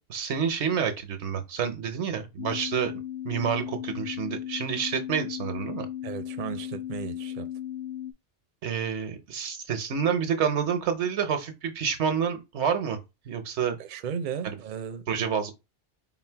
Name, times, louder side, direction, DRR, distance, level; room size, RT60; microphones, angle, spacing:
voice 1, 0.1-2.9 3.2-5.9 8.6-13.0 13.3-13.8 14.4-14.6 15.1-15.5, right 7 dB, 85° right, 1.1 m, -28 dB
sound 1, 2.4-8.1, left 11 dB, 85° left, 0.9 m, -36 dB
voice 2, 6.0-7.5 13.8-15.4, right 8 dB, 55° right, 0.6 m, -35 dB
4.1 x 2.1 x 4.4 m
omnidirectional pair, 1.1 m